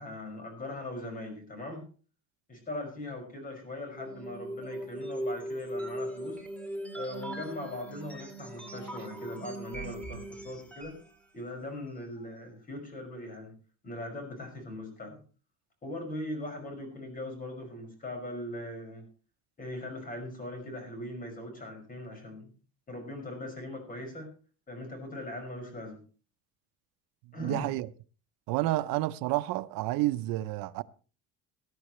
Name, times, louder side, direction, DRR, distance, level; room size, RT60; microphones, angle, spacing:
voice 1, 0.0-1.9 2.5-6.4 6.9-10.9 11.3-13.5 13.8-15.2 15.8-19.1 19.6-22.5 22.9-24.3 24.7-26.0 27.3-27.7, left 1 dB, 25° left, 5.7 m, -40 dB
sound 1, 3.9-11.1, right 1 dB, 5° left, 2.3 m, -39 dB
voice 2, 27.4-27.9 28.5-30.8, right 17 dB, 85° right, 0.7 m, -30 dB
19.0 x 12.5 x 3.1 m
cardioid pair, 160°, 33 cm